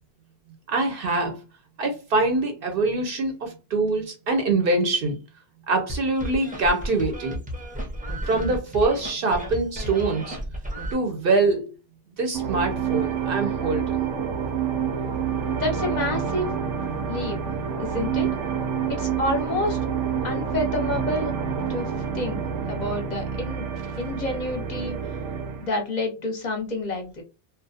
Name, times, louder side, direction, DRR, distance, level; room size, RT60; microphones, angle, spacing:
voice 1, 0.7-1.4 1.8-5.2 5.7-7.4 8.2-10.4 10.9-11.7 12.2-14.0, right 3 dB, 60° right, 0.7 m, -24 dB
sound 1, 5.9-10.9, equal, 10° right, 0.4 m, -33 dB
sound 2, 12.3-25.7, right 7 dB, 90° right, 0.9 m, -28 dB
voice 2, 15.5-16.5 17.1-17.4 17.8-18.3 18.9-19.8 20.2-21.3 21.7-22.4 22.7-23.7 24.0-25.0 25.6-27.2, left 1 dB, 50° left, 0.6 m, -28 dB
2.4 x 2.0 x 2.6 m
omnidirectional pair, 1.2 m